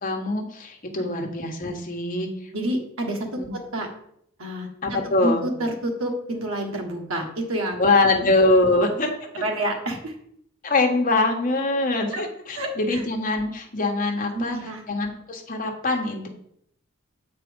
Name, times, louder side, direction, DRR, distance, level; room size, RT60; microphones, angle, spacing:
voice 1, 0.0-2.3 3.4-3.5 4.8-5.4 7.8-9.1 10.6-14.6 14.9-16.3, left 2 dB, 40° left, 2 dB, 1.2 m, -23 dB
voice 2, 2.5-3.9 4.4-7.8 8.1-8.3 9.4-10.1 12.1-12.2 12.5-13.1 14.3-14.8, right 1 dB, 80° right, 2 dB, 1.6 m, -29 dB
8.3 x 4.4 x 5.2 m, 0.71 s
head